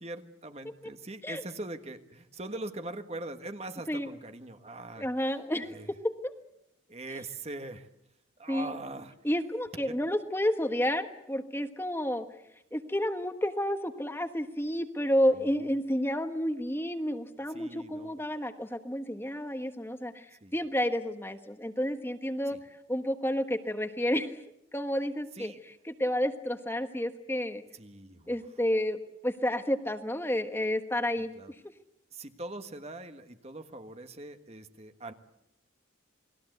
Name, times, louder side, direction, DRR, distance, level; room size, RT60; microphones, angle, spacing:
voice 1, 0.0-5.1 5.6-5.9 6.9-7.9 8.4-9.2 9.9-10.0 15.4-15.5 17.5-18.2 20.4-20.5 22.5-22.6 25.3-25.6 27.7-28.4 31.3-31.5 32.1-35.1, right 2 dB, 30° right, 8 dB, 1.5 m, -42 dB
voice 2, 5.0-5.7 8.5-8.7 9.2-12.2 12.7-22.6 22.9-24.4 24.7-25.5 25.8-27.6 28.3-31.3, equal, 10° left, 7 dB, 1.3 m, -30 dB
28.5 x 20.5 x 8.0 m, 0.80 s
head